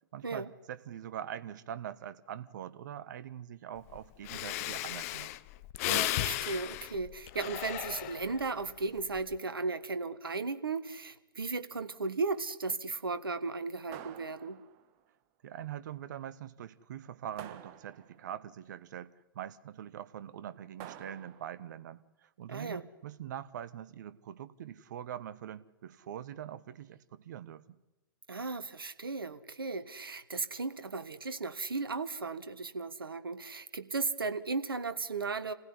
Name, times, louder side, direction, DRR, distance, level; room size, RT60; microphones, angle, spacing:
voice 1, 0.1-5.3 15.4-27.8, right 10 dB, 55° right, 1.3 m, -43 dB
Breathing, 3.9-4.0 4.2-8.5 9.0-9.3, left 16 dB, 40° left, 0.8 m, -35 dB
voice 2, 5.9-14.6 22.5-22.8 28.3-35.5, right 4 dB, 80° right, 1.6 m, -36 dB
sound 1, 13.9-15.0 17.4-18.4 20.8-21.7, right 10 dB, 40° right, 1.6 m, -49 dB
27.5 x 16.0 x 9.9 m
figure-of-eight pair, 110°, 12 cm